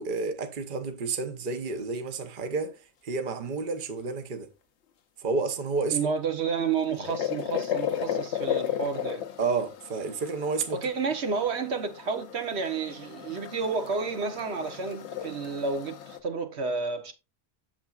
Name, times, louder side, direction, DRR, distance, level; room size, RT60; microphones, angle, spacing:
voice 1, 0.0-4.5 5.2-6.0 9.4-10.8, right 4 dB, 50° right, 1.1 m, -30 dB
voice 2, 5.9-9.3 10.7-17.1, right 5 dB, 70° right, 1.2 m, -30 dB
sound 1, 6.4-16.2, left 9 dB, 75° left, 1.0 m, -35 dB
8.8 x 7.0 x 2.4 m
omnidirectional pair, 1.1 m